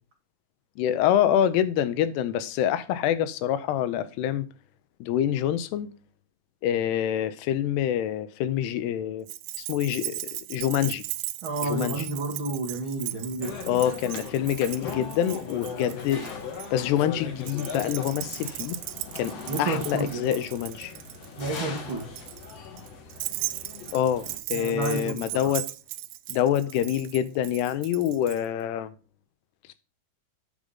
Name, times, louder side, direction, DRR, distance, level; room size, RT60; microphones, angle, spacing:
voice 1, 0.8-4.5 5.0-5.9 6.6-9.3 9.6-11.0 11.6-12.0 13.7-16.3 16.7-18.8 19.2-20.9 23.9-25.7 26.3-28.9, left 10 dB, 85° left, 2.8 m, -26 dB
Keys jangling, 9.3-16.7 17.4-28.4, right 17 dB, 90° right, 2.7 m, -37 dB
voice 2, 11.4-13.8 15.7-15.9 19.5-20.2 21.4-22.2 24.5-25.5, right 3 dB, 70° right, 1.1 m, -31 dB
sound 1, 13.4-24.4, left 5 dB, 55° left, 1.9 m, -39 dB
8.7 x 5.0 x 5.6 m
omnidirectional pair, 4.7 m